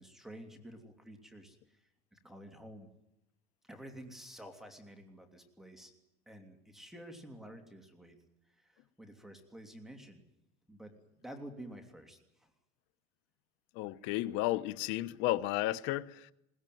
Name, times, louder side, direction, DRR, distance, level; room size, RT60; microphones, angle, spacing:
voice 1, 0.0-2.9 3.6-5.9 6.3-8.2 8.5-10.2 10.7-10.9 11.2-12.5, right 1 dB, ahead, 2.9 m, -50 dB
voice 2, 13.7-16.3, left 16 dB, 65° left, 1.1 m, -33 dB
21.5 x 20.0 x 9.3 m
cardioid pair, 140°, 21 cm